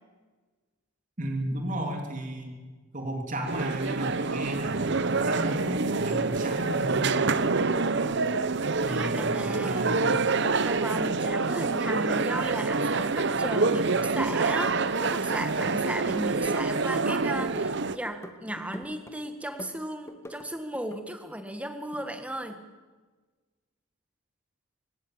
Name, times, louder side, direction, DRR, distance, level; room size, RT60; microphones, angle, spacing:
voice 1, 1.2-2.6 2.9-7.2 8.8-10.3, right 1 dB, 35° right, 3 dB, 3.1 m, -34 dB
sound 1, 3.5-18.0, right 4 dB, 55° right, 0.9 m, -26 dB
sound 2, 7.4-8.7 9.0-10.0 10.3-12.6 12.8-13.9 14.1-15.2 15.4-17.7 18.0-19.1 19.4-20.5 20.7-21.1, equal, 15° left, 1.6 m, -44 dB
voice 2, 8.8-9.9 10.6-22.6, right 1 dB, 5° right, 7 dB, 1.7 m, -35 dB
25.0 x 20.0 x 7.5 m, 1.3 s
head